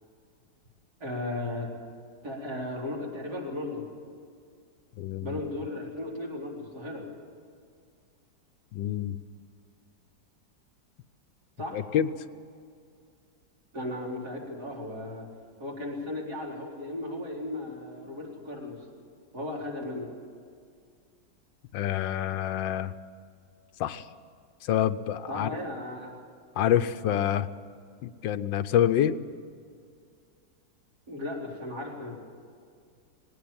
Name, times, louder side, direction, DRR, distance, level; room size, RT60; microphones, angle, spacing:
voice 1, 1.0-1.7 2.2-3.8 5.2-7.1 11.6-11.8 13.7-15.3 15.6-18.8 19.3-20.1 25.3-26.1 31.1-32.1, left 1 dB, 55° right, -3 dB, 4.7 m, -35 dB
voice 2, 5.0-5.4 8.7-9.2 11.7-12.1 21.7-22.9 23.8-24.1 24.7-25.6 26.6-27.5 28.0-29.2, left 10 dB, 85° left, 12 dB, 1.4 m, -27 dB
19.5 x 17.5 x 8.8 m, 2.2 s
omnidirectional pair, 2.0 m